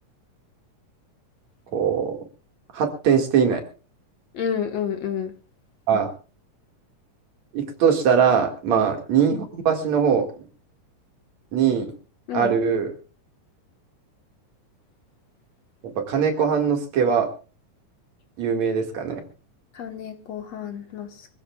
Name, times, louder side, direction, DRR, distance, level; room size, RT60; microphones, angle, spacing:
voice 1, 1.7-2.2 2.7-3.6 5.9-6.1 7.5-10.3 11.5-11.9 12.3-12.9 16.0-17.3 18.4-19.2, right 7 dB, 60° right, 4 dB, 3.2 m, -21 dB
voice 2, 4.3-5.3 8.7-8.9 12.3-12.5 19.7-21.3, left 8 dB, 60° left, 6 dB, 2.3 m, -30 dB
24.5 x 15.0 x 2.4 m, 0.34 s
omnidirectional pair, 3.8 m